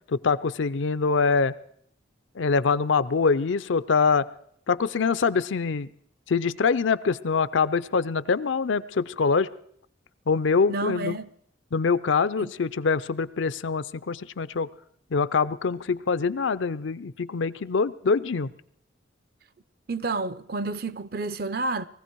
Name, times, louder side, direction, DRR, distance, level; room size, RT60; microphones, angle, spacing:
voice 1, 0.1-1.5 2.4-4.3 4.7-5.9 6.3-9.5 10.3-11.2 11.7-14.7 15.1-18.5, left 5 dB, 80° left, 0.5 m, -24 dB
voice 2, 10.7-11.3 12.4-12.5 19.9-21.9, right 3 dB, 50° right, 0.5 m, -30 dB
20.0 x 15.0 x 4.6 m
head